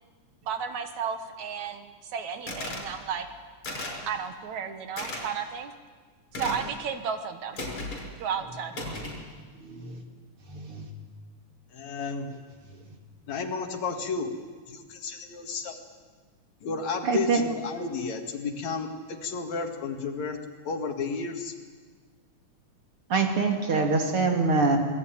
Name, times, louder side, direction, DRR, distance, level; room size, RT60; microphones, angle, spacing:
voice 1, 0.5-3.3 4.1-5.7 6.3-7.6 8.2-8.7, right 7 dB, 70° right, 8 dB, 2.7 m, -33 dB
sound 1, 2.5-2.9 3.6-4.0 5.0-5.2 6.3-6.7 7.6-8.1 8.7-9.2, left 2 dB, 40° left, 6.2 m, -35 dB
voice 2, 9.6-10.0 10.5-10.9 17.0-17.4 23.1-24.8, right 4 dB, 45° right, 3 dB, 3.4 m, -25 dB
voice 3, 11.7-12.3 13.3-14.3 14.7-15.8 16.6-20.4 20.7-21.5, left 4 dB, 65° left, 5 dB, 3.1 m, -32 dB
27.5 x 19.5 x 9.2 m, 1.5 s
omnidirectional pair, 3.5 m